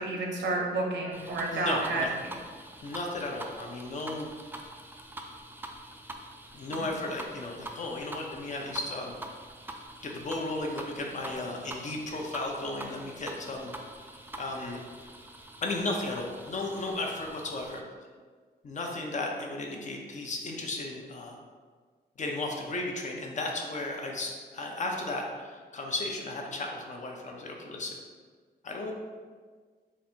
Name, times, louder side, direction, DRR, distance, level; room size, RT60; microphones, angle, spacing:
voice 1, 0.0-2.3 6.7-6.9, right 2 dB, 90° right, -1 dB, 0.8 m, -30 dB
sound 1, 1.1-17.8, right 1 dB, 10° right, 0.3 m, -45 dB
voice 2, 1.5-2.1 2.8-4.3 6.5-9.2 10.0-13.7 14.4-14.8 15.6-17.8 18.6-21.4 22.2-27.9 28.6-28.9, left 2 dB, 45° left, 1 dB, 0.7 m, -34 dB
4.1 x 2.5 x 4.4 m, 1.5 s
cardioid pair, 120°, 18 cm